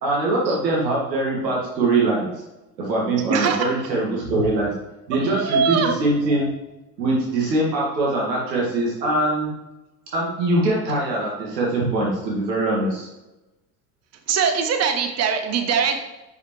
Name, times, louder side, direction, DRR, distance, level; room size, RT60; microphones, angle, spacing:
voice 1, 0.0-2.3 2.8-4.7 5.1-6.5 7.0-9.5 10.1-13.1, right 2 dB, 85° right, -4 dB, 2.0 m, -22 dB
voice 2, 3.3-3.9 5.1-5.9 14.3-16.0, right 6 dB, 30° right, 6 dB, 0.9 m, -22 dB
6.5 x 5.0 x 3.2 m, 1.0 s
hypercardioid pair, 85°, 49 cm